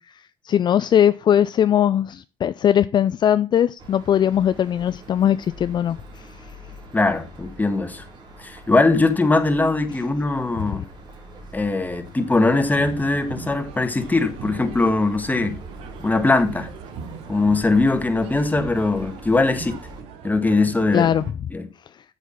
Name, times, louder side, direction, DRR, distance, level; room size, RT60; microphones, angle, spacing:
voice 1, 0.1-6.3 20.9-21.2, left 10 dB, 50° left, 0.4 m, -20 dB
sound 1, 3.8-20.0, equal, 50° right, 3.6 m, -43 dB
voice 2, 6.9-8.0 8.4-10.8 11.5-15.6 16.0-16.7 17.3-19.8 20.2-21.1 21.5-21.6, left 3 dB, 15° left, 1.7 m, -21 dB
sound 2, 12.4-21.3, right 6 dB, 75° right, 1.3 m, -39 dB
8.2 x 7.2 x 5.6 m
supercardioid pair, 70°, 10 cm